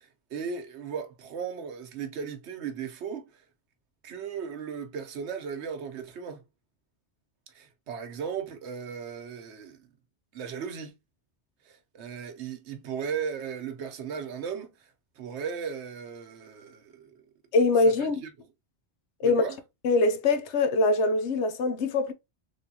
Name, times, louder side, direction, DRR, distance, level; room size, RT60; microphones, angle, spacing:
voice 1, 0.0-3.4 4.0-6.4 7.5-9.9 10.3-10.9 11.7-14.7 15.2-17.2 17.8-17.9 18.2-18.3 19.2-19.6, right 6 dB, 90° right, 1.0 m, -36 dB
voice 2, 17.5-18.2 19.2-19.4 19.8-22.1, left 3 dB, 85° left, 1.0 m, -23 dB
3.4 x 3.3 x 2.7 m
omnidirectional pair, 1.1 m